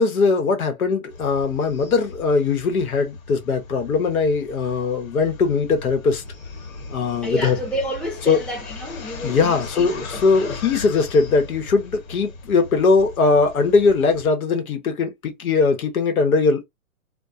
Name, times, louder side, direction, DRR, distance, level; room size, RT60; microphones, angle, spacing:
voice 1, 0.0-6.2 6.9-7.6 8.3-8.4 9.2-16.6, left 4 dB, 90° left, 1.0 m, -20 dB
sound 1, 1.1-14.3, left 4 dB, 70° left, 1.4 m, -38 dB
voice 2, 7.2-10.6, equal, ahead, 0.6 m, -30 dB
2.2 x 2.2 x 2.6 m
hypercardioid pair, 135°, 42 cm